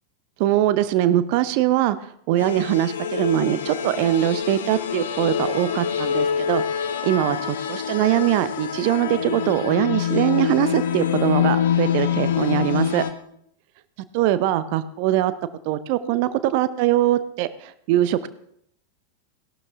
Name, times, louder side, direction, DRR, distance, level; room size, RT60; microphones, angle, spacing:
voice 1, 0.4-2.0 2.3-6.6 7.0-13.0 14.1-15.3 15.6-18.3, right 13 dB, 45° right, 14 dB, 0.8 m, -22 dB
sound 1, 2.4-13.1, left 8 dB, 60° left, 1.1 m, -25 dB
17.0 x 12.0 x 3.6 m, 0.71 s
figure-of-eight pair, 90°, 0 cm